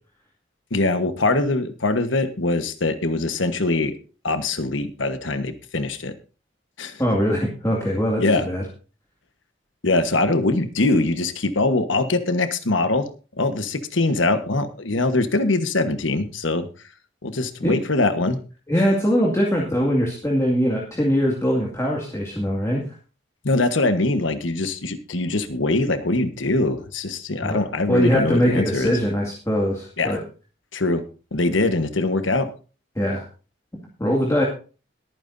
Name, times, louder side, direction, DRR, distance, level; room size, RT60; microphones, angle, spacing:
voice 1, 0.7-4.0 4.2-6.1 6.8-7.0 8.2-8.5 9.8-13.1 13.4-16.7 17.2-18.4 23.4-28.9 30.0-30.2 30.7-31.0 31.3-32.5, left 2 dB, 90° left, 9 dB, 1.3 m, -22 dB
voice 2, 7.0-8.6 17.6-17.8 18.7-22.8 27.4-27.6 27.9-30.2 33.0-33.2 34.0-34.4, equal, 15° left, -2 dB, 2.3 m, -22 dB
22.0 x 9.2 x 2.7 m, 0.36 s
head